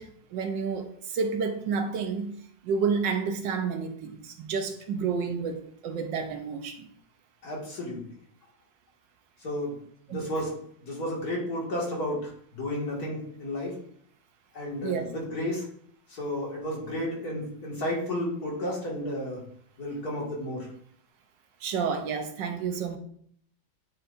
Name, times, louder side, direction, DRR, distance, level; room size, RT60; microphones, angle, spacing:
voice 1, 0.0-2.4 2.6-6.9 10.1-10.2 14.8-15.1 21.6-23.0, right 5 dB, 75° right, 1.3 m, -30 dB
voice 2, 7.4-8.1 9.4-9.7 10.1-10.5 10.8-13.8 14.5-15.6 16.1-19.4 19.8-20.7, left 1 dB, 50° left, 2.3 m, -32 dB
9.4 x 4.5 x 2.5 m
omnidirectional pair, 2.1 m